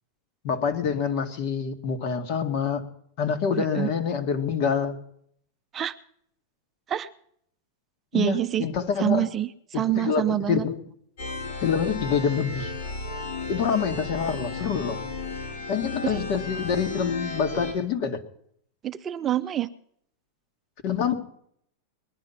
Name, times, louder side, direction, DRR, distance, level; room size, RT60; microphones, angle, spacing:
voice 1, 0.4-2.8 3.2-5.0 8.1-9.3 9.7-10.8 11.6-12.7 13.5-15.0 15.7-18.2 20.8-21.1, left 6 dB, 50° left, 6 dB, 1.8 m, -26 dB
voice 2, 3.6-3.9 5.7-5.9 6.9-7.1 8.1-8.7 9.0-10.7 16.0-16.2 18.8-19.7, right 12 dB, 25° right, 10 dB, 0.5 m, -26 dB
sound 1, 11.2-17.7, left 3 dB, 80° left, 4.7 m, -33 dB
20.0 x 11.0 x 5.8 m, 0.68 s
supercardioid pair, 145°, 0 cm